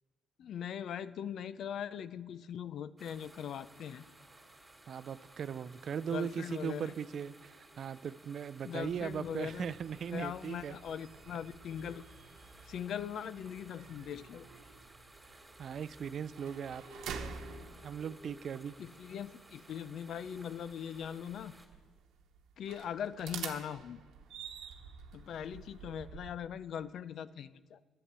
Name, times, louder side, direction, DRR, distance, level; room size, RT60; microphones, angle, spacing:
voice 1, 0.4-4.0 6.1-6.9 8.6-9.7 10.1-12.0 12.7-14.5 18.8-21.5 22.6-24.0 25.1-27.8, left 8 dB, 70° left, 16 dB, 0.5 m, -40 dB
sound 1, 3.0-21.7, right 2 dB, 10° right, 2.8 m, -58 dB
voice 2, 4.9-10.8 15.3-16.8 17.8-18.7, right 7 dB, 60° right, 16 dB, 0.4 m, -39 dB
sound 2, 7.4-19.4, left 2 dB, 20° left, 0.8 m, -60 dB
sound 3, 8.8-26.3, right 6 dB, 85° right, 1.0 m, -50 dB
11.0 x 8.8 x 8.1 m, 1.4 s
cardioid pair, 90°, 0 cm